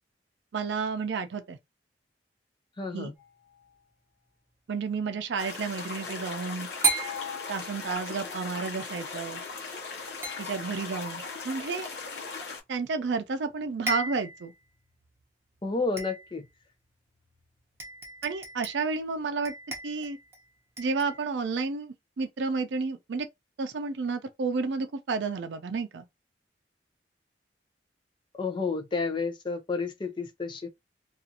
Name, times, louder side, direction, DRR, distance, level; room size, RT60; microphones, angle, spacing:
voice 1, 0.5-1.6 2.9-3.1 4.7-6.7 7.5-9.4 10.4-11.9 12.7-14.5 18.2-19.5 19.8-20.2 20.8-23.3 23.6-26.0, right 4 dB, 85° right, 0.4 m, -31 dB
voice 2, 2.8-3.1 15.6-16.5 28.4-30.7, left 4 dB, 25° left, 0.5 m, -31 dB
sound 1, 3.2-3.7 6.8-8.2 10.2-11.0 13.1-13.2 13.5-13.6 13.9-14.5 15.0-15.1 16.0-16.5 17.3-17.4 17.8-18.9 19.5-20.4 20.8-21.2, right 3 dB, 15° right, 0.8 m, -34 dB
sound 2, 5.4-12.6, left 4 dB, 80° left, 0.8 m, -38 dB
2.5 x 2.4 x 2.7 m
head